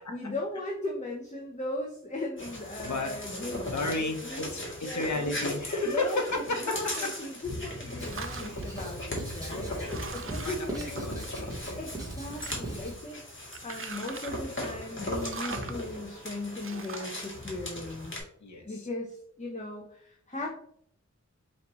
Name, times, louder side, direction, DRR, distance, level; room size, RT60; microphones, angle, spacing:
voice 1, 0.1-4.5 4.8-5.5 5.8-6.2 6.6-9.7 10.1-11.1 11.8-18.2 18.6-20.5, left 2 dB, 25° left, -1 dB, 0.7 m, -38 dB
sound 1, 2.4-18.2, left 1 dB, 40° left, 1.5 m, -38 dB
voice 2, 2.8-3.2 3.7-7.1 10.4-11.8 18.4-18.9, left 2 dB, 70° left, 3 dB, 0.9 m, -33 dB
sound 2, 6.7-7.4 7.7-8.8 9.4-9.5 9.8-11.6 11.9-12.9 13.5-14.5 15.1-15.8 16.6-17.2, right 5 dB, 45° right, 0.4 m, -42 dB
Writing, 8.0-13.0, right 1 dB, 10° right, 1.1 m, -39 dB
4.8 x 3.1 x 3.0 m, 0.62 s
wide cardioid pair, 60°, 30 cm